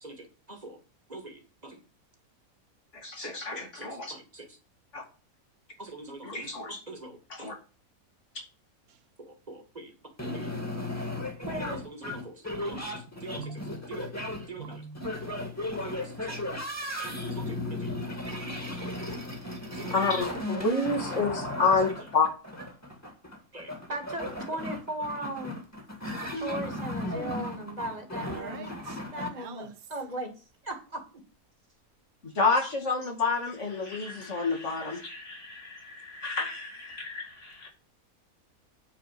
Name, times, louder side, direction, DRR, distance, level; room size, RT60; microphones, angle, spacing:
voice 1, 0.0-0.8 1.1-1.8 3.2-4.6 5.8-6.5 6.9-7.6 9.2-9.9 10.3-10.5 11.4-14.9 15.8-16.4 17.0-17.9 19.7-20.1 20.6-21.1 23.5-25.6 26.3-28.7 29.1-31.2 34.2-34.3, right 1 dB, 30° right, 2.0 m, -40 dB
voice 2, 2.9-4.1 4.9-5.0 6.2-6.8 7.3-7.5 19.9-22.3 32.3-37.7, left 4 dB, 55° left, 2.3 m, -29 dB
sound 1, 10.2-29.3, left 1 dB, 10° left, 2.0 m, -35 dB
voice 3, 13.4-13.8 14.6-15.3 19.7-19.8 28.3-29.7, right 5 dB, 85° right, 1.4 m, -44 dB
9.3 x 4.6 x 7.5 m
omnidirectional pair, 1.5 m